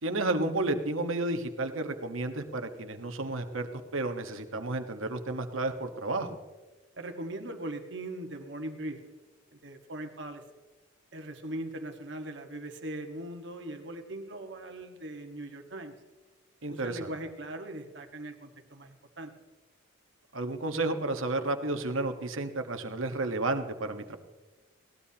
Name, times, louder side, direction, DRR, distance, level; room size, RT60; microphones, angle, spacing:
voice 1, 0.0-3.7 3.9-6.4 16.6-17.1 20.3-24.2, right 2 dB, 75° right, 7 dB, 1.4 m, -32 dB
voice 2, 7.0-9.0 9.6-10.4 11.1-15.9 16.7-19.3, right 1 dB, 60° right, 4 dB, 1.6 m, -40 dB
21.5 x 18.0 x 2.9 m, 1.2 s
head